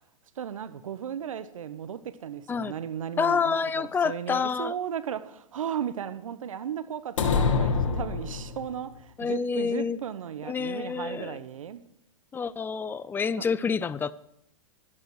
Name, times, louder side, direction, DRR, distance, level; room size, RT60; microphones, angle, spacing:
voice 1, 0.4-11.8, right 9 dB, 75° right, 1.1 m, -35 dB
voice 2, 3.2-4.7 9.2-10.0 10.4-11.4 12.3-14.1, left 6 dB, 10° left, 0.4 m, -28 dB
sound 1, 7.2-8.8, left 5 dB, 70° left, 2.4 m, -25 dB
13.0 x 12.0 x 4.8 m
hypercardioid pair, 115°, 17 cm